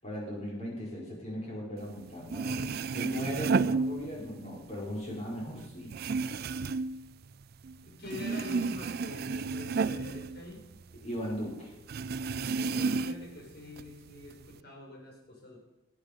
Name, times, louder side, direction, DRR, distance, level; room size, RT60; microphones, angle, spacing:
voice 1, 0.0-5.9 11.0-11.7, equal, 35° left, -3 dB, 5.0 m, -38 dB
sound 1, 2.0-2.1 2.3-4.5 4.8-7.8 8.1-11.1 11.3-11.4 11.9-13.4 13.8-14.5, right 4 dB, 50° right, 0.4 m, -32 dB
voice 2, 7.8-10.7 12.3-15.6, left 2 dB, 55° left, 0 dB, 4.3 m, -45 dB
19.5 x 9.8 x 5.2 m, 1.0 s
head